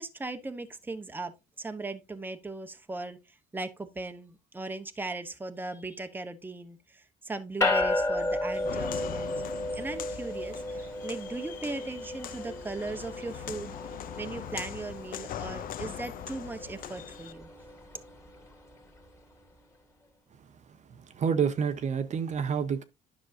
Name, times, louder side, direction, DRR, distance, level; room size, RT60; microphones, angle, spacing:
voice 1, 0.0-1.3 1.6-3.2 3.5-9.4 9.7-13.8 14.2-17.5, right 3 dB, 10° right, 0.8 m, -38 dB
sound 1, 7.6-19.2, left 2 dB, 15° left, 2.1 m, -34 dB
Walk footsteps, 8.5-17.3, left 11 dB, 55° left, 0.5 m, -41 dB
voice 2, 21.1-22.8, right 6 dB, 45° right, 0.8 m, -28 dB
10.0 x 6.1 x 2.6 m
cardioid pair, 110°, 17 cm